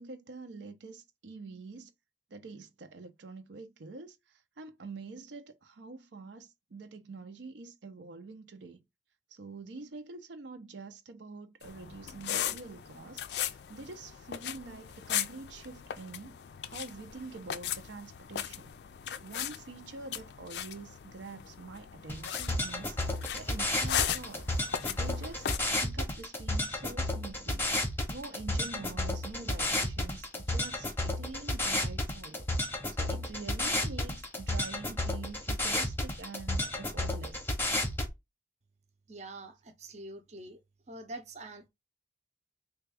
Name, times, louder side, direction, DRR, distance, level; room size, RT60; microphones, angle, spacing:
voice 1, 0.0-1.9 2.3-4.2 4.6-8.8 9.3-16.4 16.7-18.7 19.2-23.0 23.3-24.5 24.9-25.5 25.8-27.7 28.1-32.5 33.0-37.5, right 3 dB, 80° right, 0.5 m, -46 dB
sound 1, 11.6-25.6, left 10 dB, 65° left, 0.3 m, -38 dB
sound 2, 22.1-38.1, left 1 dB, 10° left, 0.7 m, -32 dB
voice 2, 39.1-40.6 40.9-41.7, right 2 dB, 40° right, 0.6 m, -45 dB
3.4 x 2.3 x 3.3 m
head